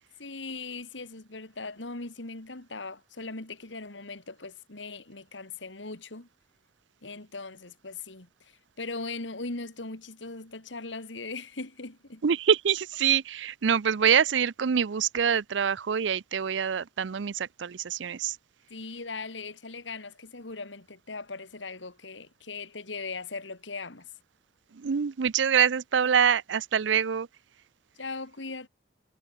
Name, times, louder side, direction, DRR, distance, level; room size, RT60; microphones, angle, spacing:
voice 1, 0.2-6.3 7.0-12.2 18.7-24.1 28.0-28.7, left 3 dB, 85° left, 2.4 m, -39 dB
voice 2, 12.2-18.4 24.7-27.3, right 7 dB, 80° right, 0.5 m, -25 dB
head